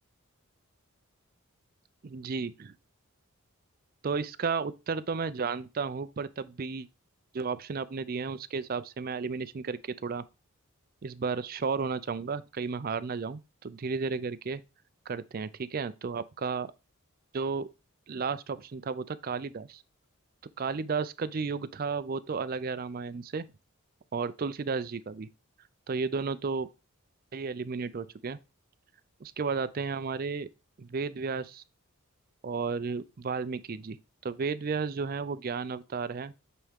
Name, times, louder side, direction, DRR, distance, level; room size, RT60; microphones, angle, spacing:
voice 1, 2.0-2.8 4.0-6.9 7.3-10.2 11.0-14.6 15.1-16.7 17.3-17.7 18.1-19.8 20.6-23.5 24.1-25.3 25.9-26.7 27.3-28.4 29.2-30.5 30.8-31.6 32.4-34.0 34.2-36.3, right 5 dB, 40° right, 0.4 m, -33 dB
8.4 x 3.6 x 3.5 m
head